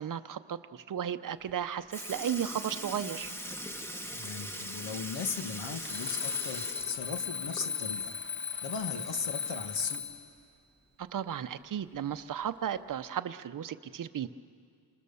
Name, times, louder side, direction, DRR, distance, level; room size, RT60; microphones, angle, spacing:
voice 1, 0.0-3.3 11.0-14.3, right 9 dB, 50° right, 11 dB, 0.7 m, -35 dB
Sink (filling or washing) / Liquid, 1.5-1.6 1.9-8.0 8.4-8.5 10.0-10.1 11.0-11.1 11.9-12.2 13.0-13.1, equal, 5° left, 1.0 m, -41 dB
voice 2, 4.1-8.2 8.6-10.0, left 5 dB, 75° left, 7 dB, 1.9 m, -37 dB
Alarm, 5.8-10.3, left 6 dB, 25° left, 1.3 m, -36 dB
28.5 x 26.5 x 7.0 m, 2.3 s
wide cardioid pair, 160°, 43 cm